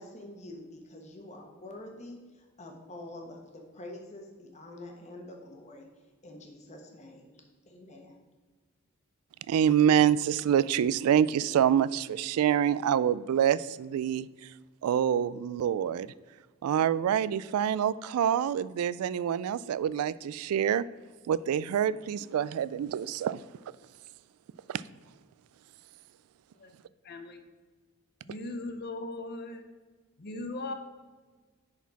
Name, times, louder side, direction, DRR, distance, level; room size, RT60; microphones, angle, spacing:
voice 1, 0.0-5.9 6.2-8.1, left 1 dB, 30° left, 1 dB, 1.2 m, -46 dB
voice 2, 9.5-14.5 14.8-16.1 16.6-20.8 21.3-23.4 24.7-24.8, right 9 dB, 90° right, 17 dB, 0.3 m, -26 dB
voice 3, 27.0-27.4 28.2-29.6 30.2-30.7, left 2 dB, 45° left, 7 dB, 0.7 m, -38 dB
10.5 x 4.2 x 4.1 m, 1.4 s
head